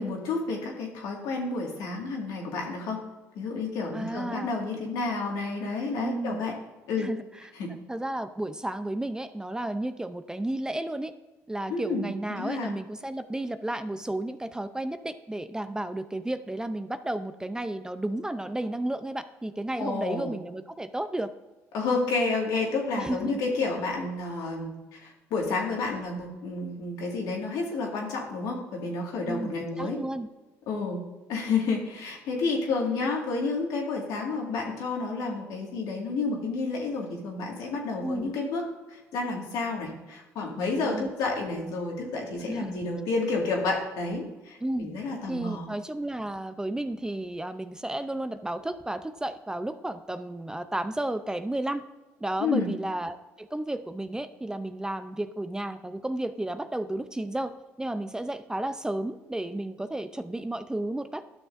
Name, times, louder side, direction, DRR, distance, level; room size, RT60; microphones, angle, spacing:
voice 1, 0.0-3.0 3.4-6.5 6.9-7.1 7.5-7.7 11.7-12.7 19.8-20.3 21.7-30.0 30.7-31.0 31.3-38.6 38.9-45.7 52.4-52.7, left 3 dB, 75° left, -1 dB, 1.9 m, -30 dB
voice 2, 3.9-4.5 6.0-6.4 7.0-7.5 7.9-11.1 11.5-21.3 23.0-23.4 29.3-29.5 29.8-30.3 38.0-38.3 40.8-41.1 42.5-42.7 44.6-44.9 45.3-51.8 52.2-61.2, right 1 dB, 10° right, 11 dB, 0.5 m, -32 dB
12.0 x 6.3 x 2.6 m, 1.1 s
supercardioid pair, 70°, 6 cm